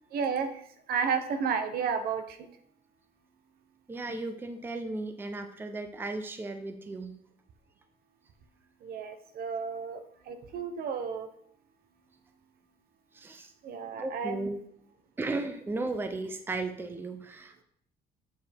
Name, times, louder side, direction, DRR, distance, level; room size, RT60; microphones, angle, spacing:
voice 1, 0.1-0.6 0.9-2.5 8.8-11.3 13.6-14.5, right 6 dB, 65° right, 9 dB, 0.8 m, -32 dB
voice 2, 3.9-7.2 13.1-13.5 14.0-14.6 15.2-17.6, right 2 dB, 10° right, 7 dB, 0.5 m, -35 dB
8.0 x 4.5 x 3.4 m, 0.65 s
cardioid pair, 110°, 17 cm